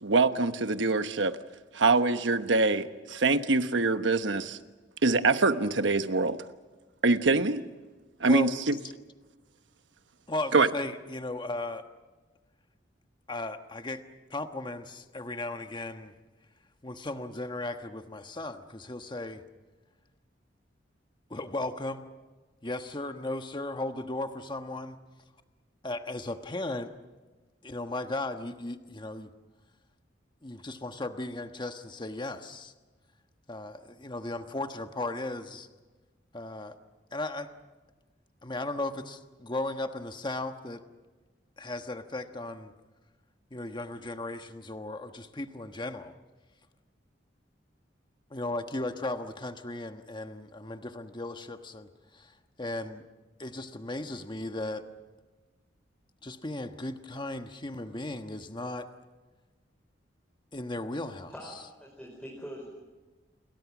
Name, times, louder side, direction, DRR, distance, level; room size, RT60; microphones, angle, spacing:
voice 1, 0.0-1.4 1.7-4.6 5.0-6.4 7.0-7.6 8.2-8.8 10.5-10.7, right 3 dB, 85° right, 10 dB, 1.2 m, -24 dB
voice 2, 10.3-11.8 13.3-14.0 14.3-16.1 16.8-19.4 21.3-22.1 22.6-25.0 25.8-26.9 27.6-29.3 30.4-32.7 33.5-35.7 36.3-36.7 37.1-37.5 38.4-40.8 41.6-42.7 43.5-46.1 48.3-52.3 52.6-53.0 53.4-54.8 56.2-58.9 60.5-61.3, left 2 dB, 25° left, 7 dB, 1.3 m, -36 dB
voice 3, 61.3-62.6, equal, 5° left, -2 dB, 4.9 m, -43 dB
29.5 x 22.0 x 6.1 m, 1.3 s
head